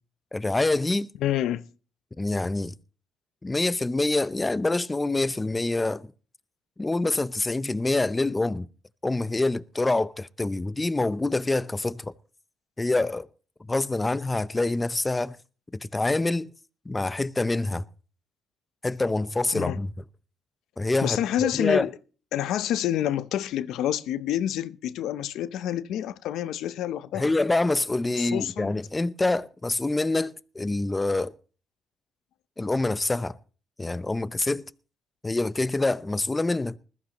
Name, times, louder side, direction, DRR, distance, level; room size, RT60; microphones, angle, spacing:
voice 1, 0.3-1.1 2.2-2.7 3.4-6.1 6.8-8.7 9.0-12.1 12.8-13.3 13.7-15.4 15.8-16.5 16.9-17.8 18.8-19.9 20.8-21.9 27.1-31.3 32.6-33.4 33.8-34.6 35.2-36.8, left 2 dB, 20° left, 0.6 m, -26 dB
voice 2, 1.2-1.6 19.5-19.8 21.0-22.0 22.3-27.3 28.2-28.7, left 11 dB, 85° left, 0.7 m, -28 dB
20.5 x 14.5 x 3.0 m
cardioid pair, 90°, 0 cm